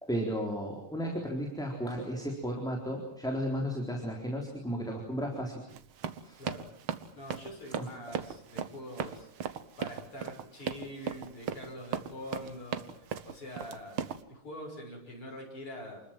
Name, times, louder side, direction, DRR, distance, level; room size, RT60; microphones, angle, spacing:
voice 1, 0.0-5.6 6.2-6.4 7.8-7.9 9.0-9.1, equal, ahead, 1 dB, 4.0 m, -34 dB
Run, 5.7-14.2, right 8 dB, 75° right, 2.1 m, -37 dB
voice 2, 7.2-9.3 9.8-14.0 14.3-16.0, left 1 dB, 90° left, 0 dB, 7.8 m, -44 dB
28.5 x 21.5 x 7.6 m, 0.66 s
omnidirectional pair, 2.4 m